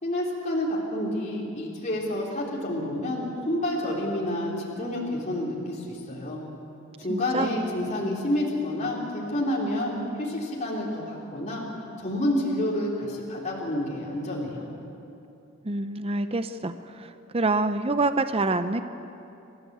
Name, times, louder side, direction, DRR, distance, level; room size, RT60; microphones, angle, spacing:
voice 1, 0.0-6.4 7.0-11.6 12.0-14.6, left 1 dB, 35° left, -4 dB, 3.5 m, -29 dB
voice 2, 7.1-7.5 15.6-18.8, right 2 dB, 25° right, 10 dB, 0.6 m, -26 dB
29.0 x 15.5 x 8.1 m, 2.8 s
head